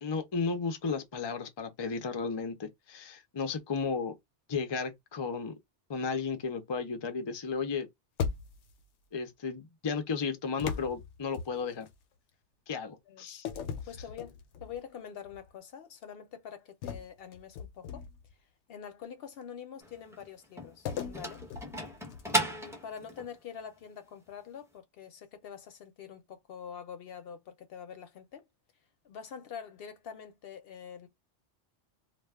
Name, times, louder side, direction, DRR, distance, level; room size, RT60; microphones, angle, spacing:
voice 1, 0.0-4.2 4.5-5.5 5.9-7.9 9.1-11.9 12.7-13.5, left 5 dB, 45° left, 0.3 m, -34 dB
sound 1, 8.2-8.8 10.6-11.9 13.4-14.8 15.3-15.5 16.8-18.3 20.9-22.5, left 6 dB, 90° left, 0.9 m, -38 dB
voice 2, 13.1-13.4 13.9-18.0 18.7-21.4 22.3-28.4 29.0-31.1, left 7 dB, 65° left, 0.7 m, -45 dB
sound 2, 19.8-23.3, right 1 dB, 5° right, 0.5 m, -35 dB
2.4 x 2.2 x 3.3 m
omnidirectional pair, 1.2 m